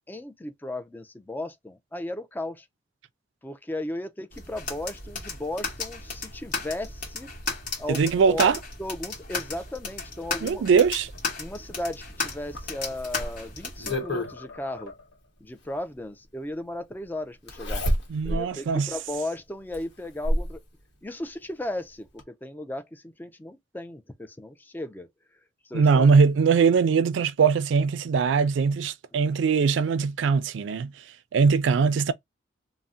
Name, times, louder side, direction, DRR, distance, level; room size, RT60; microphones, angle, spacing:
voice 1, 0.1-2.7 3.4-7.3 7.8-8.5 8.8-10.6 11.4-14.9 15.4-17.8 18.2-20.6 21.0-25.1 25.6-26.1, left 1 dB, 10° left, 0.3 m, -35 dB
sound 1, 4.3-14.0, left 4 dB, 45° left, 1.2 m, -35 dB
voice 2, 7.9-8.6 10.4-11.1 18.1-18.9 25.7-30.9 31.3-32.1, right 5 dB, 80° right, 0.3 m, -21 dB
sound 2, 12.2-13.5 13.9-15.3, left 3 dB, 85° left, 1.0 m, -46 dB
Zipper (clothing), 12.5-14.3 15.8-15.9 17.5-18.5 18.9-19.0 19.7-20.6 21.8-21.9 22.2-22.3, equal, 65° left, 1.0 m, -28 dB
2.6 x 2.0 x 3.4 m
head